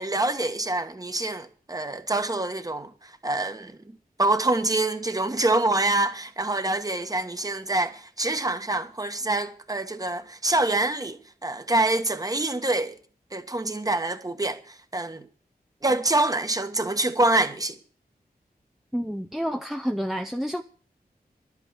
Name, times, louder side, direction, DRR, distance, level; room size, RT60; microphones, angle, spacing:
voice 1, 0.0-3.8 4.2-12.9 13.3-15.3 15.8-17.8, right 2 dB, 20° right, 1.4 m, -26 dB
voice 2, 18.9-20.6, equal, ahead, 0.6 m, -29 dB
12.0 x 8.5 x 8.2 m
wide cardioid pair, 115°, 16 cm